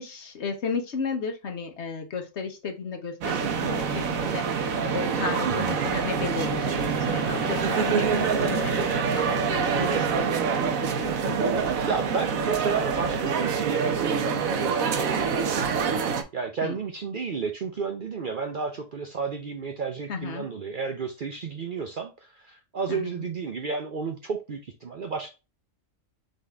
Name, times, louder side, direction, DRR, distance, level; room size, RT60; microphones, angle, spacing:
voice 1, 0.0-8.7 9.1-10.3 10.6-11.4 16.6-16.8 20.1-20.5 22.9-23.3, left 5 dB, 55° left, 5 dB, 1.2 m, -34 dB
sound 1, 3.2-8.9, left 3 dB, 35° left, 1.0 m, -40 dB
sound 2, 3.2-16.2, right 6 dB, 80° right, 1.2 m, -26 dB
voice 2, 5.5-5.9 11.9-16.0 16.3-25.3, right 5 dB, 50° right, 5 dB, 0.6 m, -32 dB
4.1 x 3.7 x 3.3 m, 0.29 s
omnidirectional pair, 1.4 m